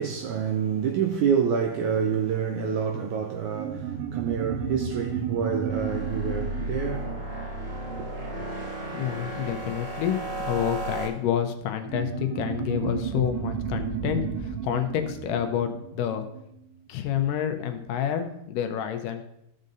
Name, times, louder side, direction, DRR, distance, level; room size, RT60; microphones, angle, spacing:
voice 1, 0.0-7.2, right 7 dB, 90° right, 1.7 m, -27 dB
sound 1, 3.5-8.5 11.8-16.8, right 7 dB, 70° right, 2.2 m, -33 dB
sound 2, 5.7-11.1, right 1 dB, 45° right, 2.9 m, -34 dB
voice 2, 8.9-10.2 10.4-16.3 16.9-19.3, left 9 dB, 80° left, 2.2 m, -28 dB
14.0 x 6.5 x 2.6 m
omnidirectional pair, 4.1 m